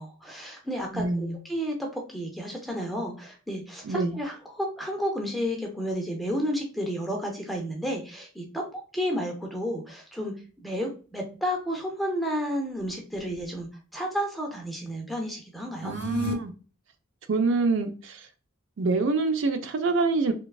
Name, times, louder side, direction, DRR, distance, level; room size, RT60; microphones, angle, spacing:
voice 1, 0.0-15.9, equal, ahead, 0.4 m, -32 dB
voice 2, 0.9-1.4 3.8-4.2 15.8-16.5 17.3-18.3 18.8-20.3, right 3 dB, 60° right, 0.4 m, -25 dB
sound 1, 15.7-16.3, left 3 dB, 55° left, 0.5 m, -33 dB
3.0 x 2.2 x 2.3 m
head